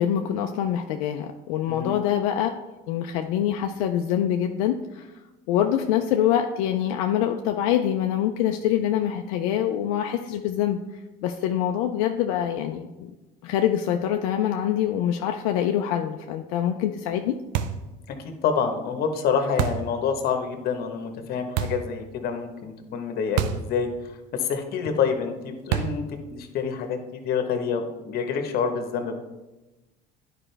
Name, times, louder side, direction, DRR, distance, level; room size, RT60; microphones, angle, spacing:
voice 1, 0.0-2.5 2.9-5.1 5.5-10.8 11.2-13.1 13.4-17.3, left 10 dB, 90° left, 5 dB, 0.4 m, -25 dB
voice 2, 1.7-2.0 18.1-23.9 24.4-26.0 26.3-29.2, left 6 dB, 60° left, 6 dB, 1.1 m, -27 dB
sound 1, 17.5-17.9 19.6-19.9 21.6-21.9 23.4-23.7 24.0-24.1 25.7-26.1, right 9 dB, 75° right, 0.5 m, -27 dB
9.8 x 5.0 x 3.3 m, 1.1 s
supercardioid pair, 95°, 18 cm